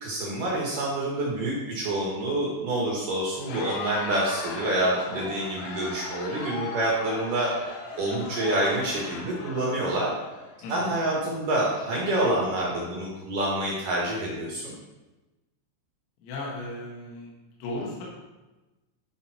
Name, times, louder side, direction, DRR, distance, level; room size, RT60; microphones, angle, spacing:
voice 1, 0.0-7.5 8.0-10.1 10.7-14.7, right 1 dB, 65° right, -4 dB, 2.2 m, -27 dB
Crowd, 3.3-10.8, left 5 dB, 85° left, 2.2 m, -38 dB
voice 2, 10.6-11.2 16.2-17.3 17.6-18.0, left 1 dB, 70° left, -4 dB, 4.0 m, -36 dB
11.5 x 5.2 x 4.4 m, 1.1 s
omnidirectional pair, 5.9 m